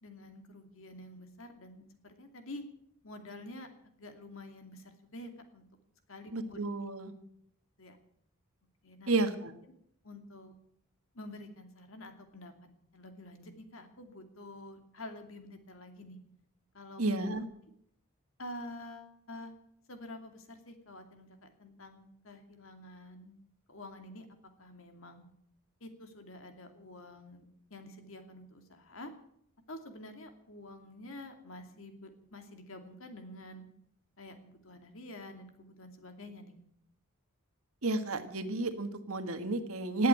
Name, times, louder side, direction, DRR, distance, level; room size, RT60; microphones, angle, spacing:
voice 1, 0.0-2.6 3.0-3.7 4.0-5.6 6.1-6.6 7.8-8.0 8.8-9.3 10.0-10.5 11.1-16.2 16.7-17.3 18.4-19.5 19.9-23.4 23.7-24.3 24.6-25.2 25.8-27.4 27.7-29.1 29.7-33.7 34.2-36.5, left 1 dB, 65° left, 6 dB, 2.7 m, -48 dB
voice 2, 6.3-7.1 9.1-9.5 17.0-17.5 37.8-40.1, right 2 dB, 75° right, 9 dB, 1.7 m, -31 dB
18.5 x 8.4 x 9.1 m, 0.70 s
head